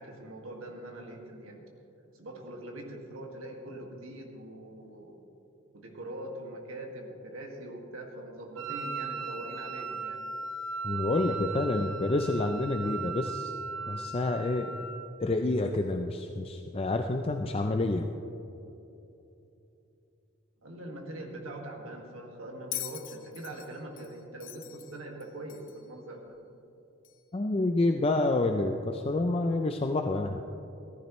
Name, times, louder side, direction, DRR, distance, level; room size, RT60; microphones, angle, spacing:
voice 1, 0.0-1.6 2.1-5.2 5.7-10.2 20.6-26.4, right 1 dB, 90° right, 1 dB, 1.9 m, -42 dB
Wind instrument woodwind instrument, 8.6-15.2, right 4 dB, 75° right, 0.9 m, -37 dB
voice 2, 10.8-13.5 13.9-14.9 15.2-18.1 27.3-30.4, left 2 dB, 30° left, 5 dB, 0.4 m, -28 dB
Bell, 22.7-25.9 27.0-27.2, left 13 dB, 70° left, 0.7 m, -42 dB
14.5 x 14.0 x 3.1 m, 2.9 s
head